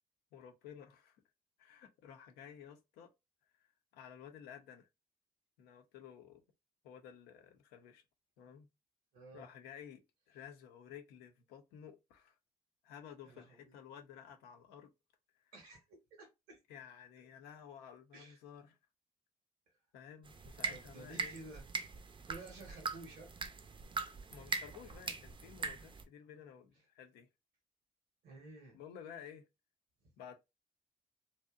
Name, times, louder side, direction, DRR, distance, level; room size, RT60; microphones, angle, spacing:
voice 1, 0.3-1.2 1.6-3.1 3.9-4.9 5.6-6.4 6.8-8.0 8.4-8.7 9.3-12.4 12.8-14.9 15.4-15.5 16.7-18.8 19.9-21.4 24.3-27.3 28.7-29.5 30.2-30.3, left 8 dB, 80° left, 0.5 m, -53 dB
voice 2, 9.1-9.5 13.2-13.7 15.5-16.6 18.1-18.4 19.7-19.8 20.7-21.6 22.2-23.3 28.2-28.8 30.0-30.1, right 2 dB, 80° right, 0.7 m, -53 dB
sound 1, 20.3-26.0, right 4 dB, 30° right, 0.4 m, -42 dB
2.7 x 2.0 x 2.3 m
hypercardioid pair, 50°, 16 cm